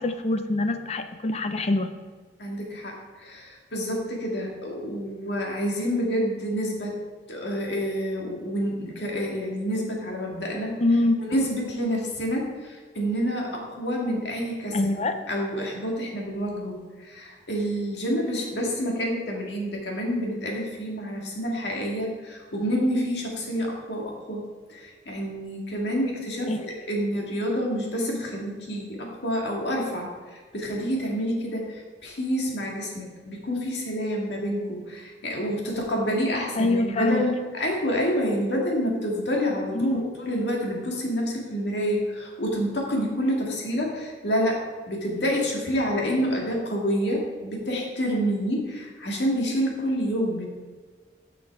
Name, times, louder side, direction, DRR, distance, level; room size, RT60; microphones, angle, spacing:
voice 1, 0.0-1.9 10.8-11.2 14.7-15.2 26.5-26.7 36.6-37.3 39.7-40.1, left 2 dB, 35° left, 8 dB, 0.5 m, -24 dB
voice 2, 2.4-7.0 7.3-10.8 11.2-26.6 26.9-44.6 44.9-50.4, equal, 70° left, -1 dB, 2.0 m, -28 dB
9.6 x 6.1 x 4.7 m, 1.4 s
head